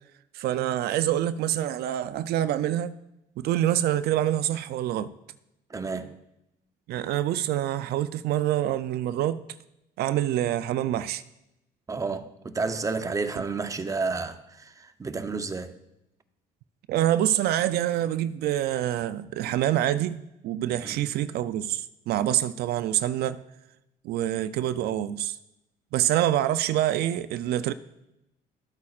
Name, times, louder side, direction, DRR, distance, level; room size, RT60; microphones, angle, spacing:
voice 1, 0.3-2.9 3.4-5.1 6.9-9.5 10.0-11.2 16.9-23.4 24.0-25.4 25.9-27.7, right 12 dB, 70° right, 0.4 m, -26 dB
voice 2, 5.7-6.2 11.9-15.8 20.7-21.0, right 4 dB, 20° right, 0.6 m, -31 dB
13.0 x 8.4 x 2.4 m
cardioid pair, 110°, 17 cm